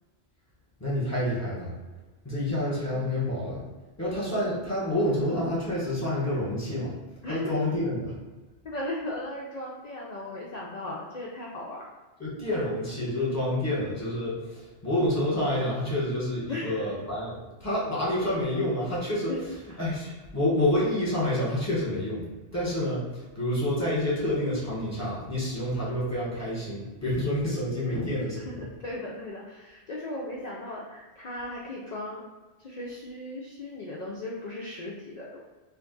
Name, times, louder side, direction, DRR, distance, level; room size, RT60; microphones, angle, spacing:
voice 1, 0.8-1.7 2.2-3.7 4.0-6.9 7.3-8.0 12.2-19.3 19.8-28.3, left 1 dB, 15° left, -8 dB, 1.0 m, -28 dB
voice 2, 8.6-11.9 16.5-17.0 19.3-19.8 27.9-28.1 28.3-32.3 32.6-35.5, left 1 dB, 60° left, -3 dB, 0.4 m, -37 dB
2.6 x 2.3 x 3.7 m, 1.2 s
omnidirectional pair, 1.2 m